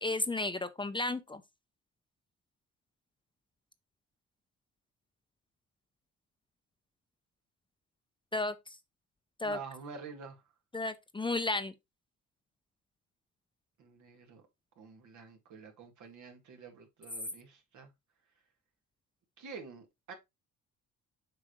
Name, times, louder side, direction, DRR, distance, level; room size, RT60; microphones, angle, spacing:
voice 1, 0.0-1.4 8.3-8.5 9.4-9.6 10.7-11.7, left 2 dB, 15° left, 0.6 m, -33 dB
voice 2, 9.4-10.4 13.8-14.4 14.8-17.9 19.4-20.1, right 5 dB, 70° right, 1.9 m, -48 dB
7.4 x 4.8 x 3.0 m
cardioid pair, 90°, 30 cm